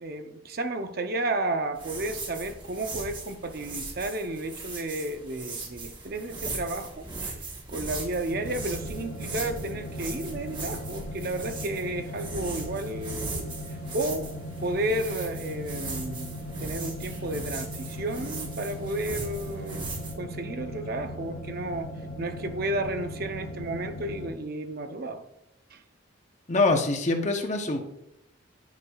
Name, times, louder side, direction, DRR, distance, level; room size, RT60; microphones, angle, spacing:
voice 1, 0.0-7.4 7.7-13.5 13.9-14.3 14.6-19.9 20.2-21.9 22.2-25.2 25.7-25.8, right 1 dB, 45° right, 7 dB, 0.6 m, -32 dB
sound 1, 1.7-20.1, right 3 dB, 25° right, 1.1 m, -39 dB
sound 2, 8.3-24.3, equal, 90° left, 1.8 m, -38 dB
voice 2, 26.5-27.9, left 3 dB, 35° left, 5 dB, 0.8 m, -24 dB
10.5 x 6.3 x 2.3 m, 0.80 s
head